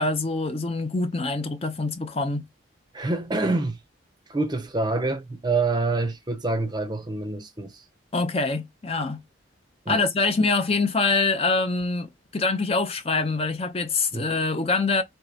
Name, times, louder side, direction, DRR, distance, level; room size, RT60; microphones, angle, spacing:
voice 1, 0.0-2.5 8.1-9.2 9.9-15.0, left 3 dB, 30° left, 0.5 m, -25 dB
voice 2, 2.9-3.8 4.3-7.8 9.9-10.0 14.1-14.3, right 3 dB, 20° right, 0.6 m, -26 dB
4.5 x 2.8 x 2.7 m
head